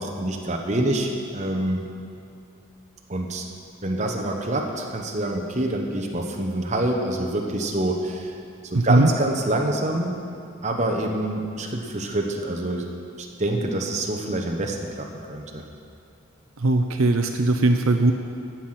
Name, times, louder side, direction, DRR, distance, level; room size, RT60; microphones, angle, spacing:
voice 1, 0.0-1.9 3.1-3.4 3.8-8.3 8.7-10.1 10.6-12.9 13.2-15.6, right 1 dB, 30° right, 1 dB, 1.2 m, -26 dB
voice 2, 8.7-9.1 16.6-18.1, right 2 dB, 70° right, 5 dB, 0.7 m, -19 dB
15.5 x 6.0 x 7.8 m, 2.5 s
head